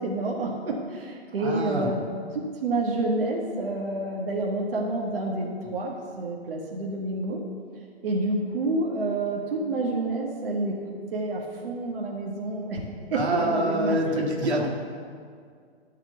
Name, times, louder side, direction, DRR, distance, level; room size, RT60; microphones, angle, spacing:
voice 1, 0.0-2.0 2.6-7.4 8.0-10.8 11.1-14.2, right 2 dB, 55° right, -2 dB, 1.9 m, -28 dB
voice 2, 1.4-1.9 13.1-14.7, right 1 dB, 75° right, -1 dB, 2.1 m, -26 dB
12.5 x 4.9 x 7.9 m, 2.1 s
hypercardioid pair, 135°, 33 cm